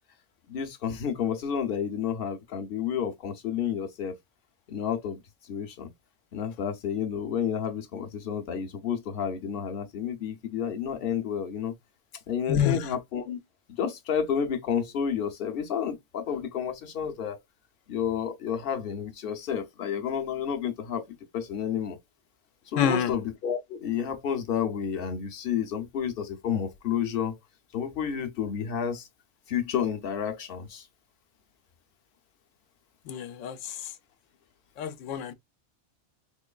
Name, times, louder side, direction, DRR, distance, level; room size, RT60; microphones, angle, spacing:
voice 1, 0.5-4.2 4.7-5.9 6.3-11.7 12.3-13.4 13.8-17.4 17.9-21.1 21.3-22.0 22.7-27.3 27.7-29.1 29.5-30.9, left 8 dB, 60° left, 0.8 m, -30 dB
voice 2, 12.5-13.0 22.8-23.2 33.1-33.9 34.8-35.3, left 8 dB, 90° left, 0.9 m, -27 dB
3.8 x 2.9 x 2.3 m
omnidirectional pair, 1.2 m